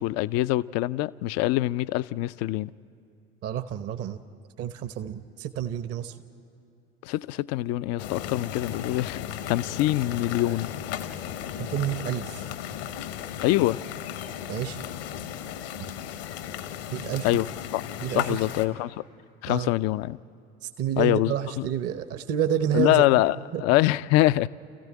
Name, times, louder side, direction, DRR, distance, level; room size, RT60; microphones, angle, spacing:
voice 1, 0.0-2.7 7.0-10.7 13.4-13.8 17.2-17.5 17.7-17.8 18.1-19.0 19.4-20.2 21.0-21.7 22.7-24.5, left 16 dB, 50° left, 0.5 m, -24 dB
voice 2, 3.4-4.2 4.6-6.1 11.6-12.4 14.5-14.8 16.9-17.3 18.0-18.4 19.5-19.7 20.6-23.0 23.5-23.6, right 10 dB, 45° right, 0.9 m, -29 dB
sound 1, 8.0-18.7, left 10 dB, 70° left, 1.1 m, -35 dB
30.0 x 15.0 x 8.8 m
figure-of-eight pair, 60°, 33 cm